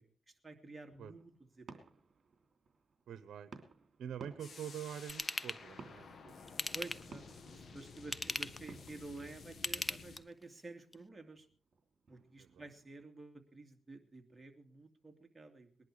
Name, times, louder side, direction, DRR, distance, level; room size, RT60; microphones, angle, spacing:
voice 1, 0.0-1.9 6.7-11.5 12.1-15.7, right 2 dB, 20° right, 3 dB, 2.6 m, -51 dB
sound 1, 0.9-13.0, right 4 dB, 50° right, 3.1 m, -59 dB
voice 2, 3.1-3.5 4.0-6.3 12.4-12.7, right 9 dB, 80° right, 13 dB, 0.9 m, -46 dB
sound 2, 4.4-10.2, left 4 dB, 55° left, 2.0 m, -53 dB
Ratchet pawl / Tools, 5.1-5.6 6.5-7.2 8.0-8.7 9.5-10.4 10.9-11.0, left 1 dB, 15° left, 0.8 m, -38 dB
20.0 x 11.0 x 4.9 m, 0.43 s
cardioid pair, 80°, 0 cm